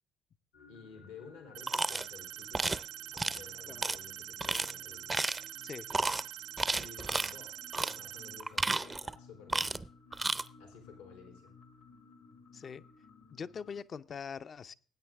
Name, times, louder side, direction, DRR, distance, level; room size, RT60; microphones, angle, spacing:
sound 1, 0.5-13.8, left 3 dB, 70° left, 1.6 m, -59 dB
voice 1, 0.7-2.8 3.1-5.3 6.7-9.7 10.6-11.5, left 5 dB, 90° left, 4 dB, 3.0 m, -53 dB
sound 2, 1.5-8.4, right 11 dB, 80° right, 1.0 m, -45 dB
sound 3, 1.7-2.1 2.5-2.8 3.2-3.4 3.8-4.0 4.4-4.7 5.1-5.5 5.9-6.2 6.6-7.3 7.7-8.0 8.4-9.2 9.5-9.9 10.1-10.4, right 3 dB, 20° right, 0.6 m, -32 dB
voice 2, 12.5-12.8 13.3-14.7, left 6 dB, 45° left, 13 dB, 0.6 m, -42 dB
20.0 x 9.1 x 3.6 m, 0.42 s
hypercardioid pair, 60°, 0 cm